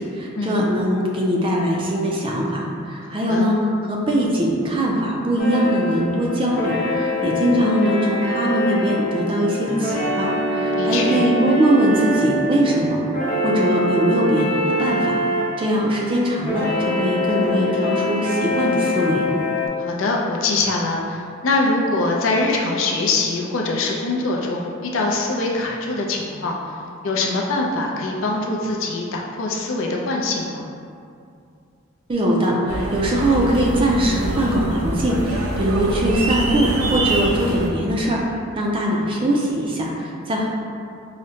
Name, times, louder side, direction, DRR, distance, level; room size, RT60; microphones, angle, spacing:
voice 1, 0.0-3.6 3.9-13.0 13.4-15.2 15.6-19.2 32.1-40.5, right 1 dB, 25° right, -2 dB, 0.4 m, -21 dB
voice 2, 3.0-3.5 10.8-11.3 19.8-26.6 27.0-30.7, left 2 dB, 70° left, -1 dB, 0.4 m, -23 dB
sound 1, 5.4-19.7, left 1 dB, 40° left, 0.9 m, -24 dB
sound 2, 32.7-37.7, right 1 dB, 85° right, 0.5 m, -25 dB
4.8 x 2.1 x 2.7 m, 2.4 s
head